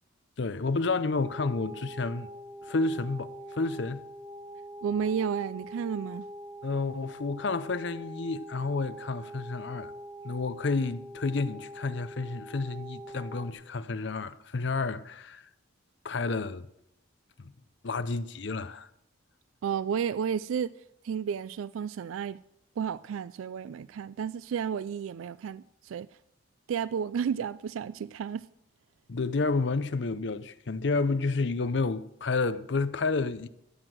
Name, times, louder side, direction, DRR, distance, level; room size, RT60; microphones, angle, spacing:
voice 1, 0.4-2.3 2.6-4.0 6.6-9.9 10.2-15.4 16.0-16.7 17.4-17.5 17.8-18.9 29.1-33.5, left 3 dB, 60° left, 0.6 m, -30 dB
sound 1, 1.2-13.5, equal, 15° right, 0.6 m, -44 dB
voice 2, 4.8-6.2 19.6-20.7 21.0-22.4 22.8-26.1 26.7-28.5, right 7 dB, 85° right, 0.3 m, -32 dB
13.5 x 7.8 x 6.3 m
head